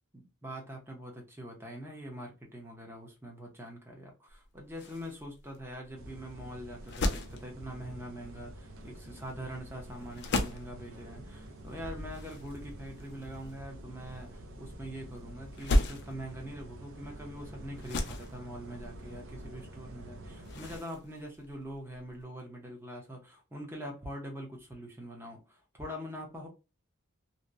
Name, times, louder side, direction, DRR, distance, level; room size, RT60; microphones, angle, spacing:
voice 1, 0.1-26.5, equal, 10° right, 0.6 m, -43 dB
sound 1, 4.3-22.2, left 1 dB, 50° left, 0.4 m, -37 dB
sound 2, 6.0-20.8, right 1 dB, 60° right, 0.5 m, -48 dB
2.8 x 2.1 x 2.4 m
head